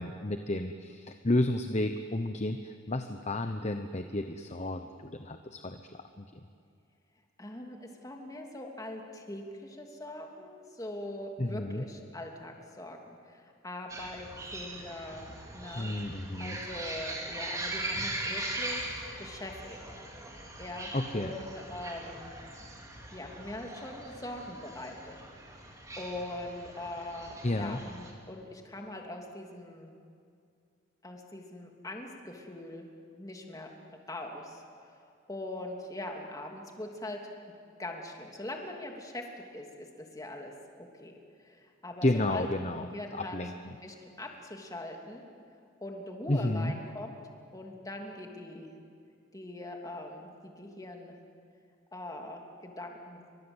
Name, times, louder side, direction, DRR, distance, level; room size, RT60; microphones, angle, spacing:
voice 1, 0.0-6.2 11.4-11.8 15.7-16.6 20.9-21.3 27.4-27.8 42.0-43.7 46.3-46.7, left 1 dB, 35° left, 7 dB, 1.0 m, -32 dB
voice 2, 7.4-15.3 15.5-19.8 20.6-22.4 23.1-25.7 26.0-30.0 31.0-32.9 33.2-37.2 37.8-42.5 42.8-43.4 43.7-45.3 45.8-47.2 47.5-48.7 49.3-51.2 51.9-53.2, left 1 dB, 15° left, 1 dB, 3.0 m, -42 dB
sound 1, 13.9-28.1, right 1 dB, 15° right, 3.5 m, -40 dB
29.5 x 24.5 x 8.1 m, 2.4 s
head